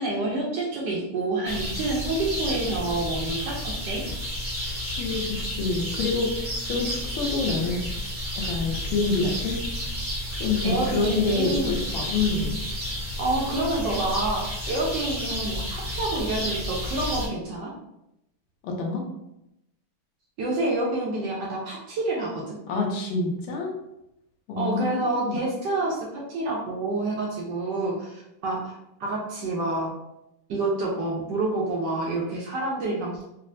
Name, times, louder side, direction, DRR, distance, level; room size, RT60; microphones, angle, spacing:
voice 1, 0.0-4.1 10.6-11.7 13.2-17.7 20.4-22.6 24.6-29.9 30.5-33.2, right 2 dB, 70° right, -3 dB, 1.0 m, -28 dB
sound 1, 1.4-17.3, equal, 35° right, 0.4 m, -31 dB
voice 2, 4.8-7.8 8.4-9.6 10.4-12.6 18.6-19.1 22.7-23.7 24.5-25.4, left 3 dB, 70° left, 0 dB, 1.4 m, -27 dB
4.1 x 2.0 x 2.6 m, 0.86 s
omnidirectional pair, 2.4 m